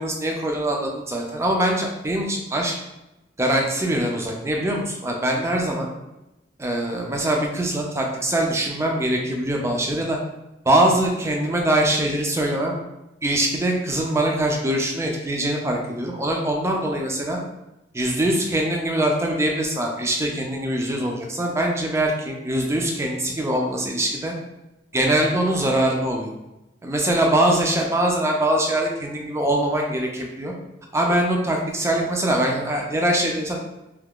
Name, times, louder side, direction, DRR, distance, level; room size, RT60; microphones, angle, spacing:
voice 1, 0.0-2.8 3.4-5.9 6.6-10.2 10.7-12.8 13.2-17.4 17.9-24.3 24.9-26.3 26.8-30.5 30.9-33.6, right 1 dB, 15° right, 0 dB, 0.4 m, -23 dB
2.7 x 2.3 x 3.6 m, 0.97 s
head